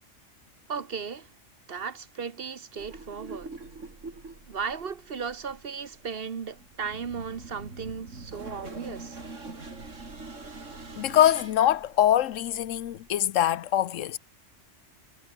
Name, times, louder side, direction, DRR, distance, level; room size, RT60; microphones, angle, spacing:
voice 1, 0.7-1.3 1.7-3.6 4.5-9.2, right 6 dB, 50° right, 1.3 m, -36 dB
sound 1, 2.8-13.3, right 3 dB, 80° right, 3.7 m, -44 dB
voice 2, 11.0-14.2, left 11 dB, 90° left, 1.1 m, -23 dB
omnidirectional pair, 1.3 m